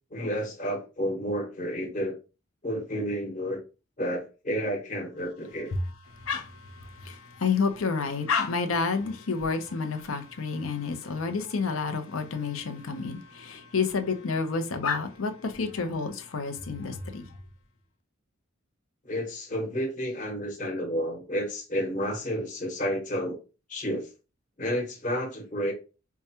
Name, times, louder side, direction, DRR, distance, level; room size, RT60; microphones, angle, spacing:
voice 1, 0.1-2.1 2.6-3.6 4.0-5.7 19.0-23.4 23.7-24.1 24.6-25.7, equal, 40° left, 1.1 m, -31 dB
voice 2, 6.8-17.3, left 5 dB, 85° left, 0.6 m, -29 dB
4.6 x 2.2 x 2.8 m
head